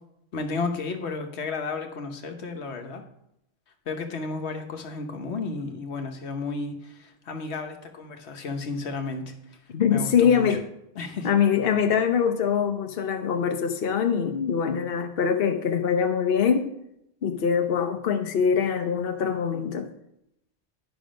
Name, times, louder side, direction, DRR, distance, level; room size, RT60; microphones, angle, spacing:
voice 1, 0.3-3.0 3.9-9.6 9.9-10.6 10.9-11.3, left 4 dB, 80° left, 6 dB, 1.3 m, -33 dB
voice 2, 9.7-10.6 11.2-16.7 17.2-19.9, left 7 dB, 60° left, 6 dB, 1.0 m, -23 dB
10.5 x 6.0 x 5.1 m, 0.79 s
omnidirectional pair, 1.1 m